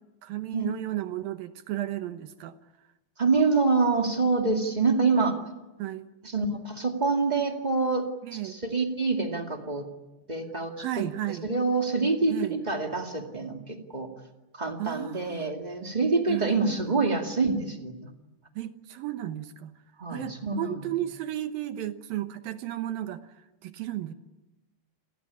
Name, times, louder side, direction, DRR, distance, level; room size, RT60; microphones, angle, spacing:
voice 1, 0.2-2.5 5.8-6.1 8.2-8.6 10.8-11.5 12.3-12.6 14.8-15.5 16.3-17.2 18.6-19.7 20.1-23.2 23.6-24.1, right 13 dB, 70° right, 10 dB, 2.4 m, -34 dB
voice 2, 3.2-5.4 6.3-9.8 10.3-10.8 11.3-14.1 14.5-18.1 20.0-20.8, right 3 dB, 25° right, 3 dB, 0.8 m, -26 dB
28.5 x 19.5 x 9.9 m, 1.0 s
omnidirectional pair, 5.0 m